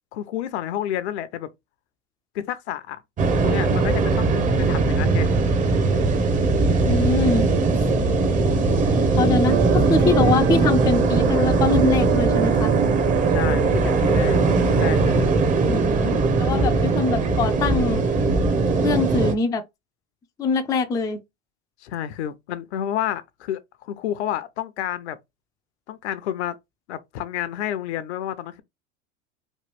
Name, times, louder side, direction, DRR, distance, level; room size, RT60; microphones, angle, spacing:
voice 1, 0.1-1.5 2.3-3.0 3.4-4.3 4.6-5.4 13.3-14.4 14.7-15.3 21.8-25.2 25.9-26.6 26.9-28.6, left 11 dB, 75° left, 0.6 m, -30 dB
sound 1, 3.2-19.3, right 3 dB, 25° right, 0.6 m, -20 dB
voice 2, 6.9-7.5 9.2-12.8 15.7-18.1 18.8-19.6 20.4-21.2, left 4 dB, 10° left, 0.3 m, -24 dB
sound 2, 9.4-15.0, right 12 dB, 75° right, 0.5 m, -28 dB
3.1 x 2.3 x 3.1 m
hypercardioid pair, 110°, 34 cm